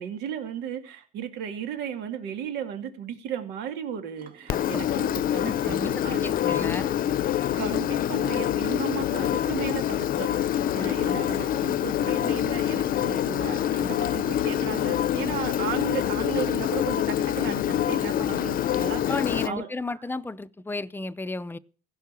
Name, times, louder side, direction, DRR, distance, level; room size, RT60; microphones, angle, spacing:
voice 1, 0.0-6.7 7.5-19.1 19.4-20.0, right 8 dB, 90° right, 2.5 m, -35 dB
sound 1, 4.2-5.6 6.0-6.1 6.8-6.9 7.4-7.6 7.9-8.0 8.9-9.0 9.8-9.9 11.0-15.9 16.3-17.0 17.4-17.5, right 4 dB, 55° right, 2.3 m, -50 dB
Engine, 4.5-19.5, left 11 dB, 55° left, 0.7 m, -26 dB
voice 2, 4.5-4.8 5.4-6.9 10.6-11.0 19.1-21.6, left 2 dB, 10° left, 0.6 m, -34 dB
16.5 x 5.6 x 8.3 m
cardioid pair, 110°, 17 cm